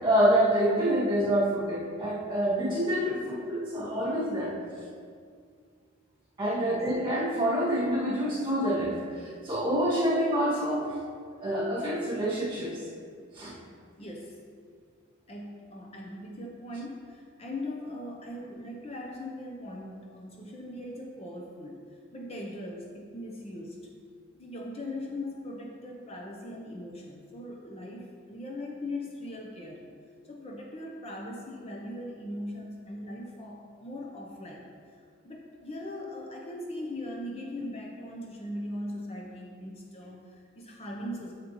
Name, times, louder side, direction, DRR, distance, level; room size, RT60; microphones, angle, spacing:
voice 1, 0.0-4.6 6.4-10.9 11.4-12.8 13.3-13.6, equal, 25° right, -6 dB, 1.9 m, -27 dB
voice 2, 14.0-14.4 15.3-23.8 24.3-29.9 30.3-41.3, left 1 dB, 30° left, -1 dB, 0.7 m, -40 dB
9.1 x 6.6 x 3.0 m, 2.1 s
head